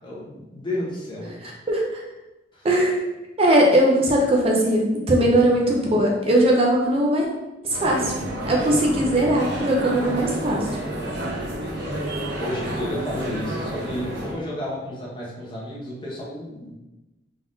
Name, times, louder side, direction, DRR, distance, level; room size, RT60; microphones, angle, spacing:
voice 1, 0.0-1.6 2.5-2.7 5.2-5.4 11.8-11.9 12.4-16.7, left 1 dB, 25° left, -5 dB, 1.0 m, -32 dB
voice 2, 1.4-2.0 2.6-3.0 3.4-7.3 7.6-8.1 8.4-10.7, right 1 dB, 35° right, -2 dB, 0.5 m, -20 dB
sound 1, 7.7-14.3, right 1 dB, 65° right, 0.9 m, -30 dB
3.8 x 3.5 x 2.6 m, 1.0 s
head